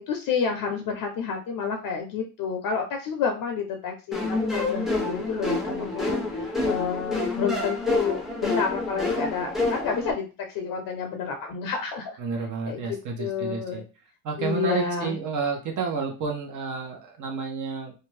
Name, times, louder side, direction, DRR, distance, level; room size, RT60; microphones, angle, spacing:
voice 1, 0.0-12.2 12.7-13.8 14.4-15.2, left 6 dB, 55° left, 4 dB, 0.6 m, -30 dB
sound 1, 4.1-10.1, left 2 dB, ahead, 0.6 m, -28 dB
voice 2, 12.2-13.8 14.2-17.9, right 5 dB, 45° right, 2 dB, 0.8 m, -30 dB
2.5 x 2.2 x 3.2 m, 0.33 s
cardioid pair, 115°, 41 cm